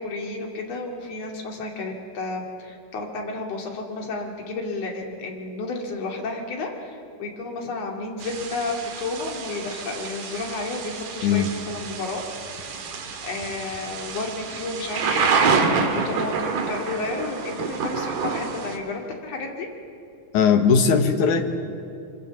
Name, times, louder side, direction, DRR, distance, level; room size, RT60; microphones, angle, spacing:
voice 1, 0.0-12.2 13.2-15.6 15.9-19.7, left 3 dB, 50° left, 1 dB, 3.6 m, -32 dB
Thunder / Rain, 8.2-18.8, right 5 dB, 75° right, 3.5 m, -28 dB
voice 2, 20.3-21.5, left 6 dB, 65° left, 6 dB, 2.8 m, -18 dB
25.0 x 25.0 x 7.2 m, 2.7 s
omnidirectional pair, 3.8 m